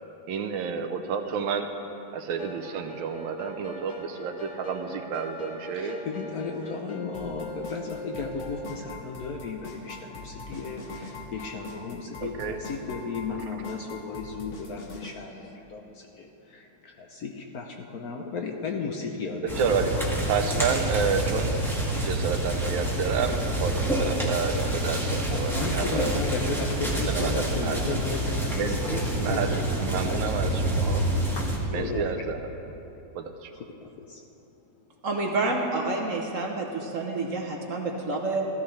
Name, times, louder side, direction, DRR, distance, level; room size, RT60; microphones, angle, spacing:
voice 1, 0.3-1.7 2.1-6.0 12.2-12.6 19.6-19.9 20.3-21.5 21.9-26.0 27.1-28.0 28.5-31.0 31.7-32.4 33.1-33.5, right 6 dB, 75° right, 6 dB, 1.4 m, -30 dB
sound 1, 2.3-14.2, left 1 dB, 40° left, 1.6 m, -42 dB
voice 2, 5.7-19.8 21.9-22.1 25.3-29.7 30.0-30.4 31.3-32.1 33.5-34.2, left 4 dB, 65° left, 2 dB, 1.0 m, -35 dB
sound 2, 7.1-15.1, left 3 dB, 90° left, 2.0 m, -43 dB
sound 3, 19.5-31.6, right 1 dB, ahead, 1.4 m, -27 dB
voice 3, 35.0-38.4, right 3 dB, 50° right, 1 dB, 1.0 m, -28 dB
14.5 x 14.0 x 3.2 m, 3.0 s
omnidirectional pair, 2.2 m